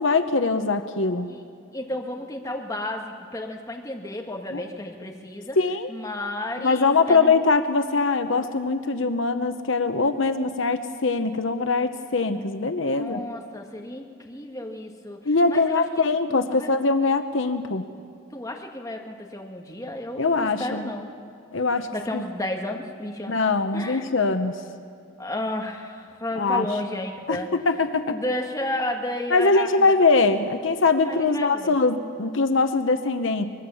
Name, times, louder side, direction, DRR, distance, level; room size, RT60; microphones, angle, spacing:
voice 1, 0.0-1.3 4.5-4.6 5.6-5.9 6.6-13.2 15.3-17.8 20.2-20.9 21.5-21.9 22.1-22.2 23.3-24.5 26.4-26.7 27.3-28.2 29.3-33.4, left 3 dB, 70° left, 8 dB, 0.9 m, -22 dB
voice 2, 1.7-5.6 5.9-7.3 12.9-16.7 18.3-21.2 21.9-23.4 23.7-24.1 25.2-27.5 28.1-29.7 31.0-31.8, left 1 dB, 15° left, 1 dB, 1.7 m, -32 dB
24.0 x 21.0 x 7.1 m, 2.3 s
head